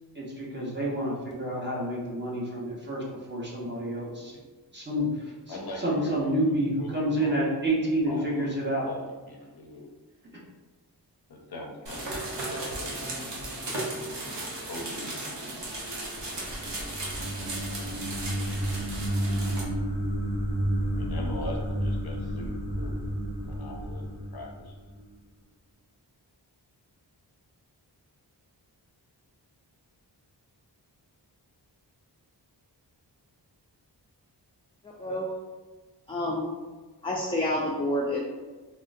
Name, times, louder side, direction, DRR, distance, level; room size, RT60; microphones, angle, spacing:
voice 1, 0.1-4.3 4.7-8.9, right 1 dB, 25° right, -5 dB, 0.9 m, -29 dB
voice 2, 5.5-6.3 6.8-7.5 8.1-9.9 11.3-13.3 14.7-15.4 20.9-23.0 23.4-24.0 24.3-24.7, left 1 dB, 60° left, 1 dB, 0.6 m, -42 dB
sound 1, 11.9-19.6, right 2 dB, 75° right, 0.9 m, -36 dB
sound 2, 15.9-25.1, right 1 dB, 50° right, 1.1 m, -31 dB
voice 3, 36.1-36.5 37.0-38.2, left 1 dB, 15° left, -4 dB, 0.4 m, -28 dB
3.7 x 2.1 x 2.5 m, 1.3 s
wide cardioid pair, 75°, 43 cm